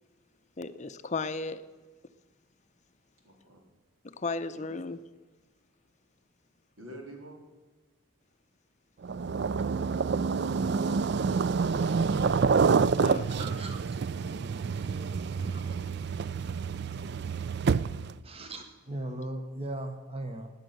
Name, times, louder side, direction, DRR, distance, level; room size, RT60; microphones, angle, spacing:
voice 1, 0.6-1.6 4.0-5.0 13.0-13.5, left 3 dB, 35° left, 10 dB, 0.6 m, -35 dB
voice 2, 3.2-3.6 4.5-4.6 6.8-7.4, equal, 80° right, 1 dB, 3.8 m, -50 dB
sound 1, 9.0-18.2, right 5 dB, 50° right, 0.3 m, -28 dB
voice 3, 13.4-13.9 14.7-15.9 18.2-20.5, right 1 dB, 30° right, 6 dB, 1.1 m, -39 dB
17.0 x 9.8 x 6.7 m, 1.3 s
head